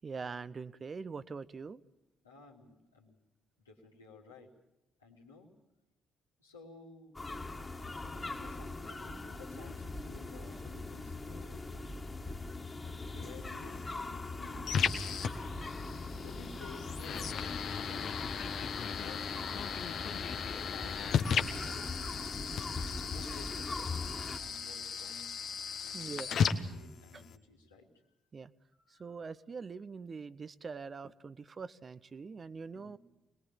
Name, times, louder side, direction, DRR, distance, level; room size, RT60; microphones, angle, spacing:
voice 1, 0.0-1.8 25.9-26.3 27.1-27.2 28.3-28.5 28.9-33.0, right 5 dB, 40° right, 15 dB, 0.9 m, -43 dB
voice 2, 2.2-3.2 3.6-4.5 5.0-5.5 6.4-7.2 8.0-11.9 12.8-15.3 16.2-19.9 20.5-22.3 23.1-25.3 25.8-27.9 28.8-29.1 32.7-33.0, left 3 dB, 85° left, -3 dB, 2.9 m, -55 dB
sound 1, 7.2-24.4, left 3 dB, 25° left, 2.2 m, -41 dB
sound 2, 13.4-27.4, left 7 dB, 55° left, 1.3 m, -36 dB
25.5 x 20.5 x 7.2 m, 0.92 s
figure-of-eight pair, 40°, 0 cm